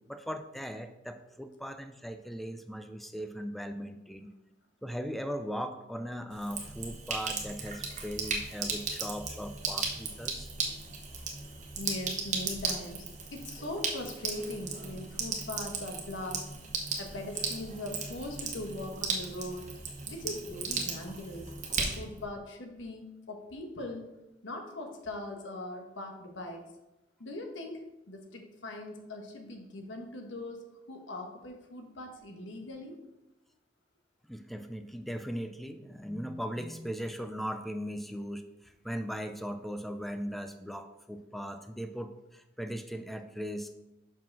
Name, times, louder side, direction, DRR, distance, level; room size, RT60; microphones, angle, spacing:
voice 1, 0.1-4.3 4.8-10.5 34.3-43.7, equal, ahead, 8 dB, 0.3 m, -38 dB
Sink (filling or washing), 6.3-22.2, right 4 dB, 40° right, 1.1 m, -36 dB
voice 2, 11.8-13.0 13.3-16.5 17.0-19.7 20.1-24.1 24.4-26.6 27.2-33.0, left 1 dB, 85° left, 3 dB, 1.2 m, -40 dB
5.6 x 4.9 x 5.9 m, 0.96 s
head